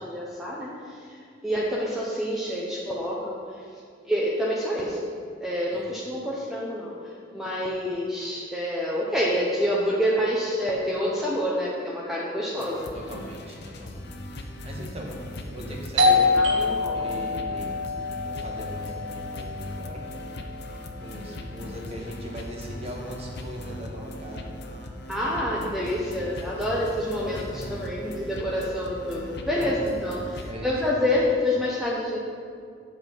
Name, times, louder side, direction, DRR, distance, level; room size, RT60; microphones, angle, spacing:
voice 1, 0.0-3.4 4.0-5.1 5.4-7.0 7.3-13.0 16.0-17.1 25.1-32.2, equal, ahead, -5 dB, 0.8 m, -27 dB
sound 1, 12.6-30.5, left 1 dB, 60° left, 0.8 m, -39 dB
voice 2, 12.9-20.4 21.0-24.5 26.4-26.6 27.5-27.8 29.5-29.8 30.4-31.2, equal, 35° right, -1 dB, 1.4 m, -40 dB
Doorbell, 16.0-21.4, left 3 dB, 80° right, 1.0 m, -26 dB
8.5 x 6.0 x 5.3 m, 2.3 s
head